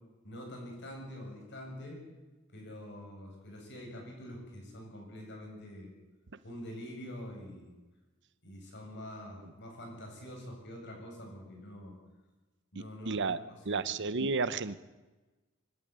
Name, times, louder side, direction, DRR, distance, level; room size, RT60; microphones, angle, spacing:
voice 1, 0.2-2.0 2.5-5.9 6.4-7.7 8.4-11.9 12.7-13.4 13.7-13.9, equal, 55° left, 1 dB, 7.9 m, -45 dB
voice 2, 12.7-13.4 13.6-14.8, right 4 dB, 60° right, 15 dB, 0.9 m, -32 dB
25.0 x 12.5 x 9.5 m, 1.2 s
head